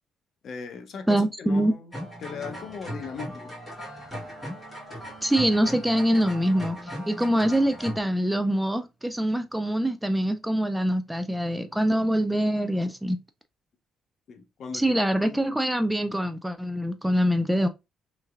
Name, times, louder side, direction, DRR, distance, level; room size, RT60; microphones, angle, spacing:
voice 1, 0.4-1.9 2.2-3.5 14.3-15.0 15.2-15.6, left 5 dB, 60° left, 0.6 m, -38 dB
voice 2, 1.1-1.7 5.2-13.2 14.7-17.7, equal, 5° right, 0.4 m, -24 dB
sound 1, 1.9-8.0, equal, 15° left, 1.8 m, -38 dB
3.2 x 3.2 x 2.4 m
cardioid pair, 115°, 0 cm